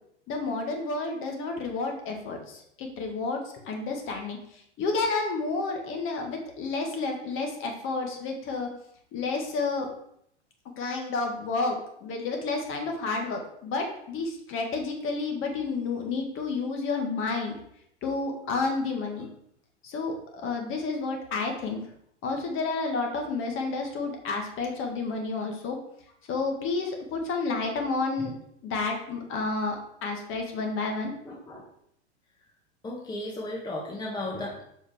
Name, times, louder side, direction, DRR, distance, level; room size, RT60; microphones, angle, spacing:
voice 1, 0.3-3.4 3.7-4.4 4.8-8.7 9.1-9.9 10.8-11.8 12.0-17.5 18.0-19.3 19.8-21.8 22.2-25.8 26.3-28.3 28.6-31.1, left 3 dB, 35° left, 2 dB, 1.7 m, -30 dB
voice 2, 31.2-31.6 32.8-34.6, left 1 dB, 10° left, -2 dB, 1.2 m, -35 dB
6.6 x 5.0 x 3.6 m, 0.71 s
hypercardioid pair, 100°, 35 cm